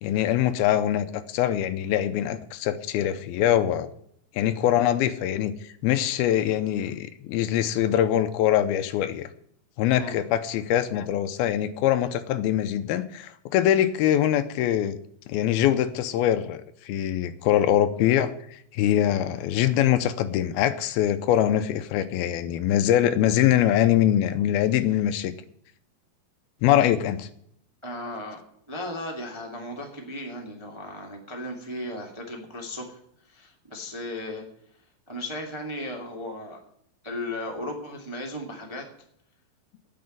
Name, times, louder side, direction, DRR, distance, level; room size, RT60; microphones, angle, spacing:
voice 1, 0.0-3.9 4.3-9.3 9.8-15.0 15.3-25.3 26.6-27.3, left 11 dB, 80° left, 11 dB, 2.5 m, -23 dB
voice 2, 27.8-28.4 28.7-33.0 33.2-34.4 35.1-36.6 37.0-38.8, left 1 dB, 10° right, 1 dB, 1.2 m, -35 dB
9.5 x 7.8 x 9.3 m, 0.70 s
omnidirectional pair, 4.5 m